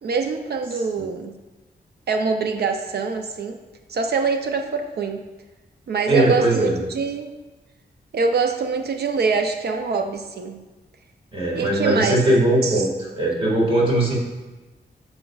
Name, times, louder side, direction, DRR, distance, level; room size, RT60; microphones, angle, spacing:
voice 1, 0.0-1.3 2.1-3.6 3.9-5.2 5.9-7.3 8.1-10.6 11.5-12.2 12.6-12.8, right 5 dB, 65° right, 5 dB, 0.5 m, -24 dB
voice 2, 6.1-6.8 11.3-14.1, right 1 dB, 30° right, -3 dB, 1.8 m, -20 dB
9.2 x 6.8 x 2.3 m, 1.2 s
wide cardioid pair, 180°, 18 cm